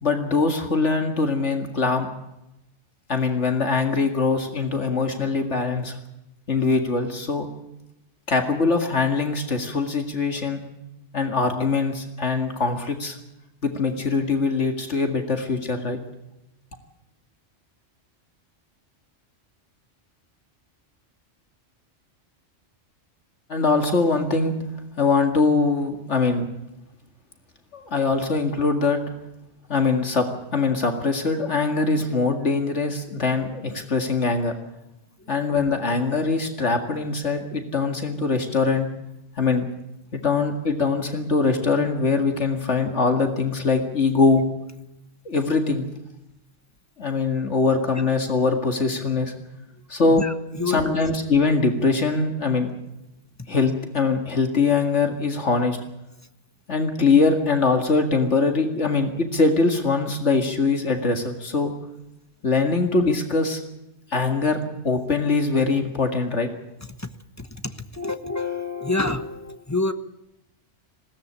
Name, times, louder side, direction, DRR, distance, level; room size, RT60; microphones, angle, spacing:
voice 1, 0.0-2.1 3.1-6.0 6.5-7.5 8.3-10.6 11.1-13.2 13.6-16.0 23.5-24.5 25.0-26.5 27.7-29.0 29.7-30.3 30.5-34.5 35.3-38.9 39.4-39.7 40.1-44.5 45.3-45.9 47.0-49.3 49.9-50.2 50.7-52.7 53.5-55.8 56.7-61.7 62.4-63.6 64.1-64.6 64.8-66.5, left 4 dB, 70° left, 5 dB, 2.4 m, -22 dB
voice 2, 50.1-50.9 67.0-67.1 67.4-69.9, left 3 dB, 15° left, 9 dB, 1.1 m, -28 dB
20.5 x 17.0 x 8.6 m, 0.90 s
omnidirectional pair, 1.2 m